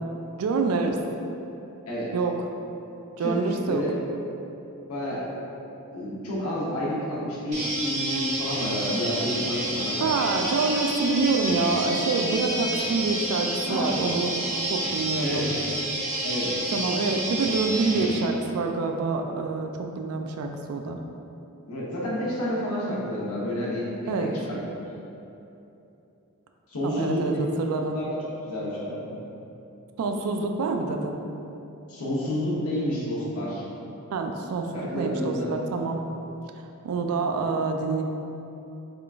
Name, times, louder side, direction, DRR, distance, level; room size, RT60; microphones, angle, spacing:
voice 1, 0.4-1.0 2.1-2.5 3.2-3.8 10.0-14.4 14.7-15.5 16.7-21.0 24.0-24.3 26.8-27.3 27.6-28.0 30.0-31.2 34.1-36.0 36.8-38.0, right 4 dB, 70° right, 4 dB, 0.3 m, -26 dB
voice 2, 3.2-3.9 4.9-5.2 5.9-10.1 13.7-13.8 15.2-15.4 16.2-16.5 21.7-24.3 26.7-27.4 27.9-28.2 28.4-28.9 31.9-33.6 34.7-35.5, left 1 dB, 70° left, -6 dB, 0.9 m, -29 dB
sound 1, 7.5-18.2, right 1 dB, 30° right, 0.7 m, -29 dB
3.6 x 2.4 x 3.4 m, 2.9 s
head